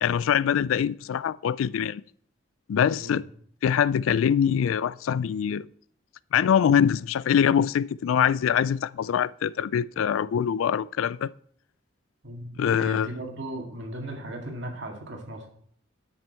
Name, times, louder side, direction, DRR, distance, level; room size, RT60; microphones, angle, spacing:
voice 1, 0.0-2.0 2.7-3.2 3.6-5.7 6.3-11.3 12.6-13.1, left 8 dB, 80° left, 0.3 m, -23 dB
voice 2, 12.2-15.5, right 1 dB, 60° right, 1.9 m, -37 dB
10.5 x 6.0 x 4.4 m
head